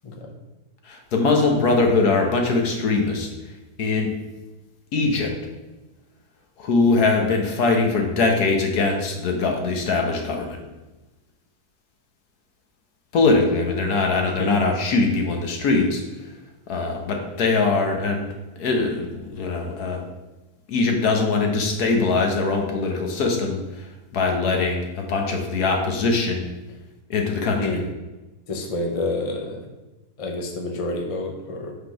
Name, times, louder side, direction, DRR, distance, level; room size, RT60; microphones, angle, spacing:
voice 1, 0.9-3.3 3.8-4.1 4.9-5.3 6.6-10.6 13.1-16.0 16.7-18.3 18.6-20.1 20.7-26.4 27.1-27.8, left 3 dB, 65° left, 2 dB, 1.4 m, -22 dB
voice 2, 28.5-29.6 30.2-31.7, left 2 dB, 35° left, 2 dB, 0.5 m, -28 dB
5.2 x 4.0 x 5.7 m, 1.1 s
omnidirectional pair, 1.8 m